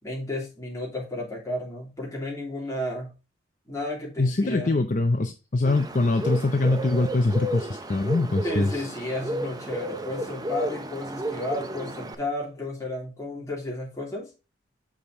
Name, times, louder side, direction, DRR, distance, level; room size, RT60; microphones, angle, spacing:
voice 1, 0.0-3.1 3.7-4.7 8.4-14.3, left 1 dB, 15° left, 2.8 m, -33 dB
voice 2, 4.2-8.9, left 2 dB, 40° left, 0.5 m, -23 dB
Bird, 5.7-12.2, right 1 dB, 20° right, 0.6 m, -33 dB
7.2 x 4.9 x 3.7 m
head